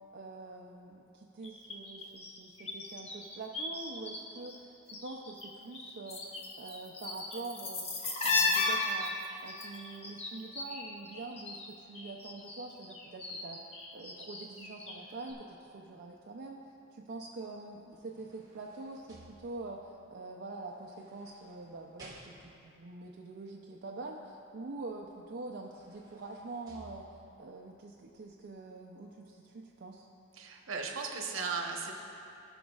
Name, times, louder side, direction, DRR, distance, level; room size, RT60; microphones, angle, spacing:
voice 1, 0.1-7.9 8.2-9.1 9.4-30.1, right 3 dB, 55° right, -1 dB, 0.5 m, -45 dB
sound 1, 1.4-4.2 4.4-5.5 5.7-11.7 11.9-15.0 15.3-15.4, left 3 dB, 30° left, 0.9 m, -35 dB
sound 2, 17.7-19.9 20.8-22.8 25.0-25.1 25.5-27.5 28.1-28.2, right 1 dB, 20° right, 1.7 m, -57 dB
voice 2, 30.4-31.9, right 5 dB, 75° right, 1 dB, 1.0 m, -36 dB
17.5 x 6.1 x 2.4 m, 2.7 s
head